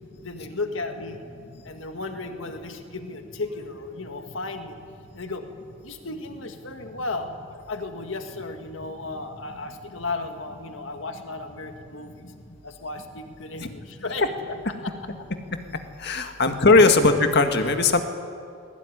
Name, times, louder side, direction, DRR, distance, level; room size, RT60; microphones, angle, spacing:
voice 1, 0.2-1.2 1.6-4.8 5.1-5.4 5.8-12.3 12.6-14.2 14.8-14.9 16.2-16.3 16.8-16.9, left 3 dB, 75° left, 6 dB, 1.8 m, -34 dB
voice 2, 16.0-18.0, left 3 dB, 60° left, 7 dB, 1.9 m, -18 dB
20.5 x 20.5 x 10.0 m, 2.4 s
head